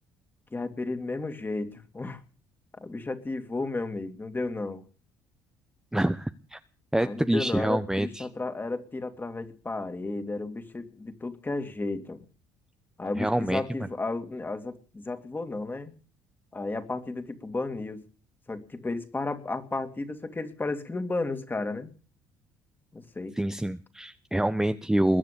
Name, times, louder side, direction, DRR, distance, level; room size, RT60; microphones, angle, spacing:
voice 1, 0.5-2.2 2.7-4.8 7.0-12.2 13.0-15.9 16.5-18.0 18.5-21.9 22.9-23.3, left 3 dB, 20° left, 8 dB, 2.7 m, -33 dB
voice 2, 5.9-6.6 6.9-8.2 13.2-13.6 23.4-25.2, right 1 dB, 5° right, 9 dB, 0.8 m, -26 dB
21.5 x 7.5 x 8.6 m, 0.40 s
supercardioid pair, 70°, 9 cm